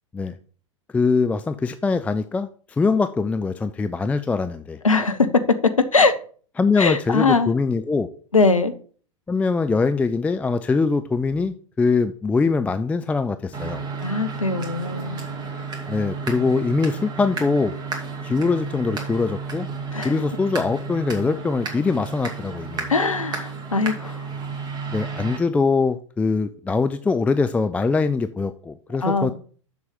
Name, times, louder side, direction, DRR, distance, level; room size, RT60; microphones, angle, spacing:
voice 1, 0.9-4.8 6.6-8.1 9.3-13.8 15.9-17.7 18.2-19.7 20.0-22.9 24.9-29.3, left 4 dB, 10° left, 0.4 m, -22 dB
voice 2, 4.8-5.3 5.9-6.2 6.8-7.5 8.3-8.7 14.0-15.2 19.9-20.2 22.9-24.3 29.0-29.3, left 3 dB, 85° left, 1.0 m, -21 dB
sound 1, 13.5-25.4, right 5 dB, 25° right, 2.3 m, -32 dB
7.1 x 6.2 x 5.5 m
figure-of-eight pair, 95°, 17 cm